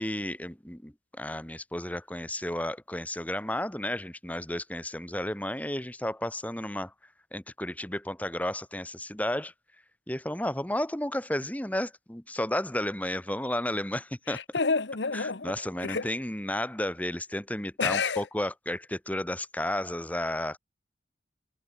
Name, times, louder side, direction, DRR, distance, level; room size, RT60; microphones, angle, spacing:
voice 1, 0.0-6.9 7.3-9.5 10.1-14.4 15.1-20.6, left 1 dB, 10° left, 1.7 m, -32 dB
voice 2, 14.3-15.5 15.8-16.1 17.8-18.2, left 4 dB, 80° left, 1.2 m, -29 dB
head